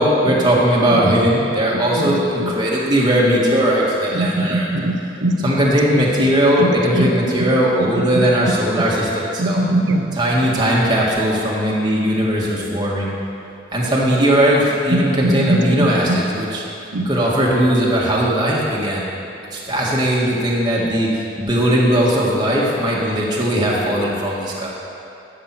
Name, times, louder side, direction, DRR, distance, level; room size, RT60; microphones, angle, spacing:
voice 1, 0.0-4.7 5.4-9.6 10.1-13.1 13.7-16.6 17.1-19.1 19.5-24.7, equal, 25° right, -5 dB, 1.9 m, -18 dB
voice 2, 1.7-2.5 4.1-5.5 6.6-6.7 6.9-7.1 9.4-10.2 14.9-16.2 16.9-17.1, right 1 dB, 85° right, 6 dB, 0.9 m, -21 dB
12.5 x 7.7 x 6.1 m, 2.7 s
head